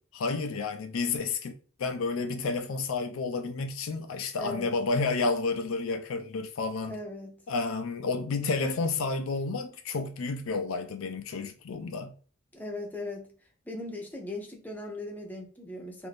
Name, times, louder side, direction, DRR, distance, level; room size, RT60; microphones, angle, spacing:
voice 1, 0.1-1.5 1.8-7.0 7.5-12.1, left 3 dB, 70° left, 0.4 m, -30 dB
voice 2, 4.4-4.7 6.9-7.4 12.5-13.3 13.7-16.1, left 2 dB, 10° left, 0.6 m, -38 dB
2.7 x 2.5 x 3.3 m
head